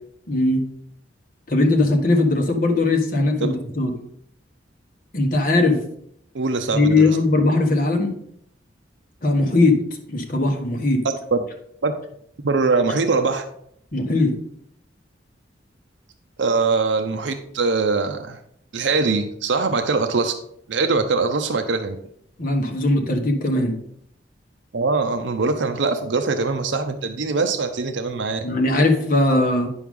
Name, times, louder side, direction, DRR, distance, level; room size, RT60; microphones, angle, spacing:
voice 1, 0.3-0.6 1.5-3.9 5.1-5.8 6.7-8.1 9.2-9.8 10.1-11.0 13.9-14.3 22.4-23.8 28.4-29.7, left 2 dB, 45° left, 3 dB, 1.3 m, -19 dB
voice 2, 6.3-7.1 11.3-11.4 11.8-11.9 12.4-13.4 16.4-18.4 18.7-20.3 20.7-22.0 24.7-28.5, right 4 dB, 70° right, 7 dB, 0.6 m, -22 dB
9.2 x 6.3 x 3.7 m, 0.71 s
head